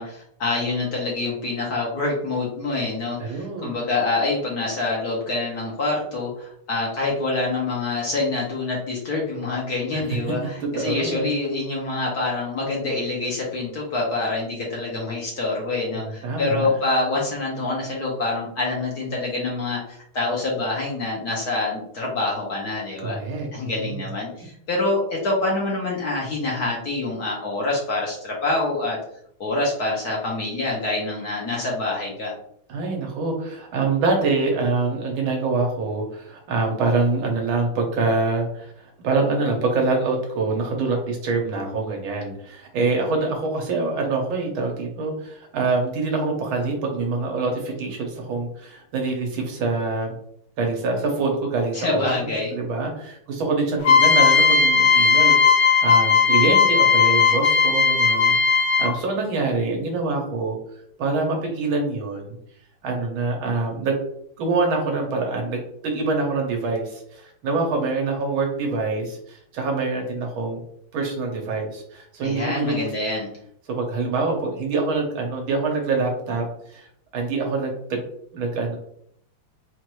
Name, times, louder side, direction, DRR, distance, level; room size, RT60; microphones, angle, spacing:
voice 1, 0.0-23.2 23.5-29.0 29.4-32.3 51.7-52.5 72.2-73.3, left 2 dB, 55° left, -3 dB, 1.2 m, -26 dB
voice 2, 3.2-3.7 9.9-10.0 10.4-11.3 15.9-16.8 23.0-24.0 32.7-50.2 50.6-60.6 61.0-62.4 62.8-63.9 64.4-70.6 70.9-72.8 73.7-76.9 77.1-78.0 78.3-78.8, right 3 dB, 70° right, 1 dB, 1.7 m, -25 dB
sound 1, 53.8-59.1, left 5 dB, 75° left, 1.8 m, -17 dB
4.5 x 2.5 x 3.0 m, 0.68 s
omnidirectional pair, 2.4 m